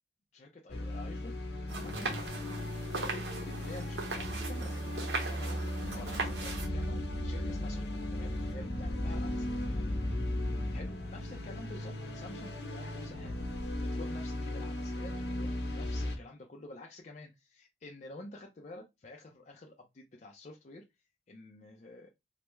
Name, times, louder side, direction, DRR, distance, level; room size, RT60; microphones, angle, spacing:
voice 1, 0.3-1.3 1.7-2.1 3.1-7.8 8.1-9.9 10.7-13.3 13.8-20.8 21.3-22.1, left 2 dB, 40° left, 0.4 m, -49 dB
sound 1, 0.7-16.2, left 1 dB, 75° left, 0.8 m, -37 dB
sound 2, 1.7-6.7, right 3 dB, 80° right, 0.8 m, -39 dB
sound 3, 5.8-10.9, left 1 dB, 50° right, 1.4 m, -39 dB
3.3 x 2.0 x 3.0 m
head